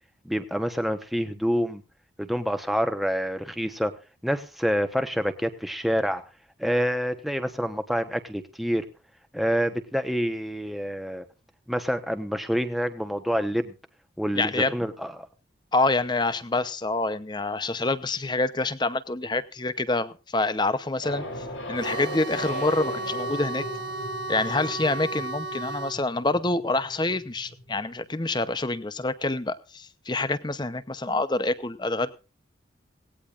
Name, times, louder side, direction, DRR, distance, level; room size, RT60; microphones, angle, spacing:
voice 1, 0.2-1.8 2.2-3.9 4.2-6.2 6.6-8.8 9.3-11.2 11.7-13.7 14.2-15.1, equal, ahead, 7 dB, 1.1 m, -27 dB
voice 2, 14.3-14.7 15.7-23.6 24.3-32.1, left 2 dB, 25° left, 14 dB, 0.8 m, -27 dB
sound 1, 21.0-28.0, left 1 dB, 90° left, 4.8 m, -38 dB
sound 2, 21.8-26.0, right 2 dB, 70° right, 2.3 m, -34 dB
18.0 x 17.5 x 2.5 m, 0.32 s
head